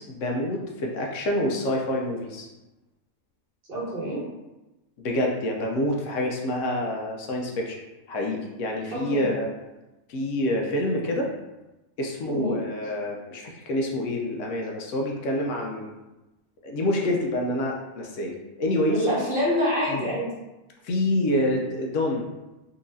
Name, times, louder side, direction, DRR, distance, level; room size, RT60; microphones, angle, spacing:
voice 1, 0.0-2.5 5.0-7.8 8.1-9.5 10.1-11.3 12.0-15.9 16.6-19.1 19.9-20.0 20.8-22.3, left 1 dB, 70° left, 0 dB, 0.9 m, -27 dB
voice 2, 3.7-4.2 8.9-9.3 12.3-12.6 18.9-20.3, equal, 50° right, -4 dB, 0.9 m, -26 dB
3.9 x 2.9 x 2.6 m, 1.0 s
omnidirectional pair, 1.4 m